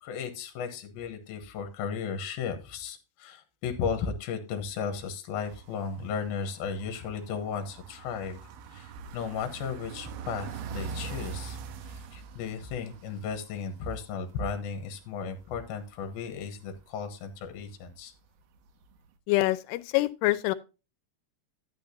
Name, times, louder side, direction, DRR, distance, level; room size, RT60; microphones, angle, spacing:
voice 1, 0.0-8.4 8.7-11.6 11.9-18.1, left 6 dB, 75° left, 2.7 m, -35 dB
sound 1, 5.4-14.3 14.6-14.7 15.0-16.8 17.2-17.9 18.2-18.3 18.8-18.9, right 6 dB, 75° right, 2.5 m, -43 dB
voice 2, 19.3-20.5, left 18 dB, 90° left, 2.7 m, -25 dB
10.0 x 9.0 x 2.6 m
omnidirectional pair, 4.7 m